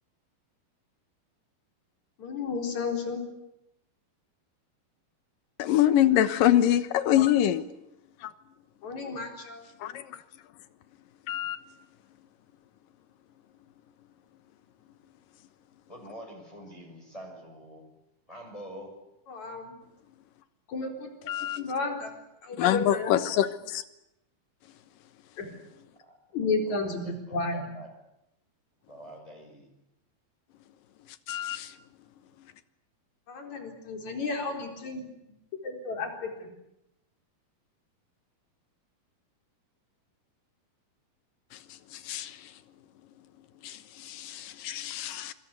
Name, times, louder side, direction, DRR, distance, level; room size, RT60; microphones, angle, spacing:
voice 1, 2.2-3.2 7.1-7.2 8.8-9.7 19.3-19.8 20.7-22.1 22.4-23.1 25.4-25.5 26.3-27.7 33.3-35.0 35.6-36.5, left 3 dB, 50° left, 5.4 m, -32 dB
voice 2, 5.6-7.6 8.2-8.3 9.8-10.2 11.3-11.6 21.3-21.6 22.6-23.8 31.3-31.7 41.9-42.4 43.6-45.3, left 12 dB, 70° left, 2.7 m, -25 dB
voice 3, 15.9-17.9 18.3-19.0 26.0-26.2 26.6-27.9 28.9-29.8, equal, 10° left, 6.2 m, -46 dB
26.0 x 23.5 x 8.4 m
omnidirectional pair, 4.3 m